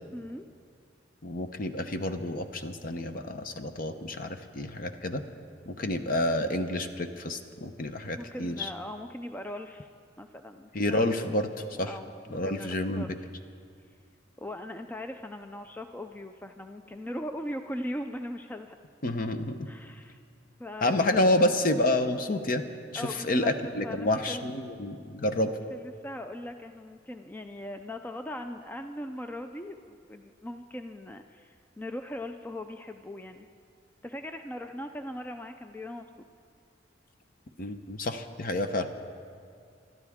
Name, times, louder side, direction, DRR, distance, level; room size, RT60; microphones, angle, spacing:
voice 1, 0.1-0.4 8.2-9.9 10.2-11.1 11.9-13.3 14.4-18.8 19.7-20.2 20.6-21.2 22.9-23.5 23.8-24.4 25.4-33.5 34.0-36.3, left 1 dB, 10° left, 6 dB, 0.4 m, -40 dB
voice 2, 1.2-5.2 5.7-8.7 10.7-11.5 11.8-11.9 12.3-13.1 19.0-19.6 20.8-22.6 22.9-25.5 37.6-38.9, left 1 dB, 45° left, 8 dB, 0.8 m, -29 dB
25.0 x 12.5 x 3.6 m, 2.3 s
head